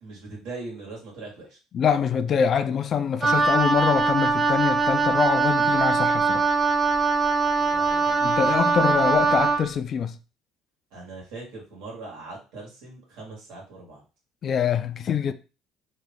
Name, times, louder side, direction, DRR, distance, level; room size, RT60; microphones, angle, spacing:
voice 1, 0.0-1.6 7.6-8.2 10.9-14.0, right 3 dB, 80° right, 1.8 m, -40 dB
voice 2, 1.7-6.5 8.2-10.2 14.4-15.3, left 7 dB, 50° left, 0.4 m, -24 dB
Wind instrument woodwind instrument, 3.2-9.7, right 4 dB, 25° right, 0.6 m, -22 dB
3.1 x 2.5 x 3.6 m
supercardioid pair, 85°, 0 cm